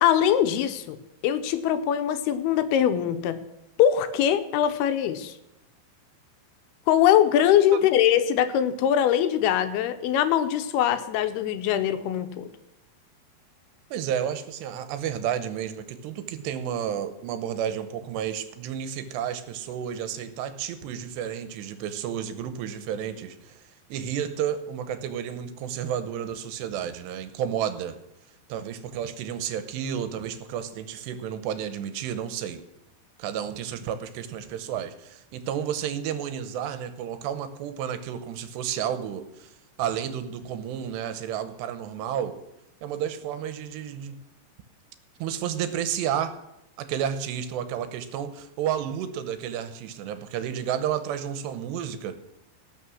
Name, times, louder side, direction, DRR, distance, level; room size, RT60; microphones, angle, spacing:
voice 1, 0.0-1.0 1.2-3.4 3.8-5.4 6.9-12.5, left 10 dB, 80° left, 10 dB, 2.5 m, -22 dB
voice 2, 13.9-28.0 28.5-32.6 33.2-42.4 42.8-44.2 45.2-46.3 46.8-52.2, right 9 dB, 90° right, 11 dB, 3.1 m, -31 dB
18.5 x 6.5 x 6.3 m, 0.90 s
omnidirectional pair, 4.8 m